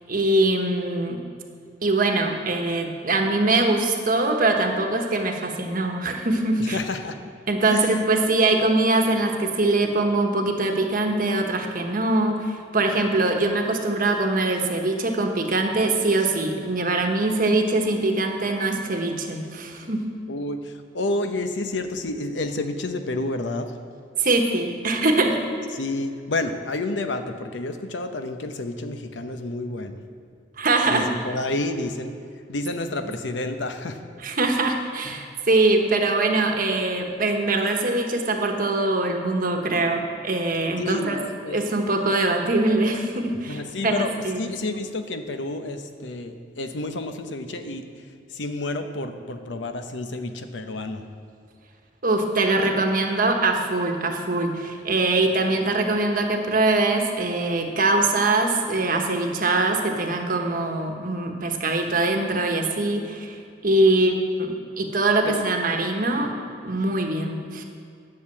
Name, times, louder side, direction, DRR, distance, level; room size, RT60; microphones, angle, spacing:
voice 1, 0.1-1.2 1.8-6.8 7.5-20.0 24.2-25.4 30.6-31.1 34.2-41.2 41.5-44.5 52.0-63.4 63.6-64.1 64.4-64.5 64.8-66.3 66.6-67.6, right 2 dB, 50° right, 3 dB, 1.2 m, -22 dB
voice 2, 6.6-7.1 7.7-7.9 20.3-23.7 25.7-30.0 30.9-32.1 32.5-34.0 40.8-41.6 43.5-47.8 48.3-51.0 63.8-64.0 64.6-64.7 65.3-65.4, left 2 dB, 70° left, 7 dB, 0.8 m, -30 dB
10.5 x 6.6 x 7.7 m, 2.3 s
head